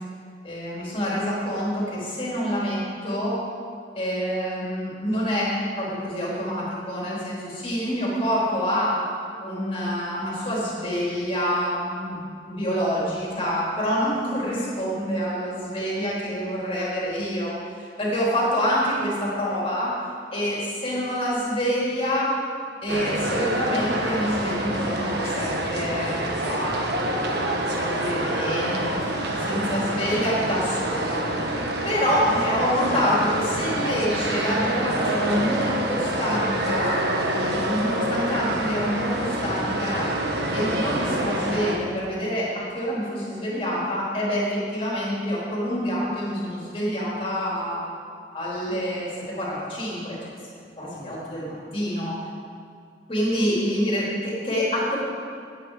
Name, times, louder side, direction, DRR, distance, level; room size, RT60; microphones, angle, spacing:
voice 1, 0.4-3.4 3.9-8.9 9.4-12.2 12.5-19.9 20.3-22.4 22.8-27.2 27.7-31.3 31.8-37.0 37.5-40.1 40.5-47.8 48.3-49.1 49.4-50.2 50.8-52.2 53.1-55.0, equal, 30° left, -6 dB, 4.0 m, -26 dB
sound 1, 22.9-41.8, right 1 dB, 60° right, 1.4 m, -27 dB
17.0 x 9.0 x 5.0 m, 2.3 s
head